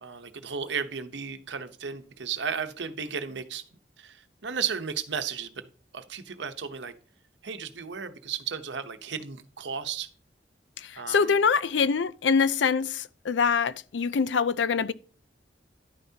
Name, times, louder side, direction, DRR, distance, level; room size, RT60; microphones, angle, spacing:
voice 1, 0.0-3.6 4.0-5.6 5.9-6.9 7.4-10.1 11.0-11.3, right 6 dB, 80° right, 0.8 m, -34 dB
voice 2, 10.8-14.9, left 5 dB, 85° left, 0.5 m, -24 dB
11.0 x 9.3 x 2.8 m
head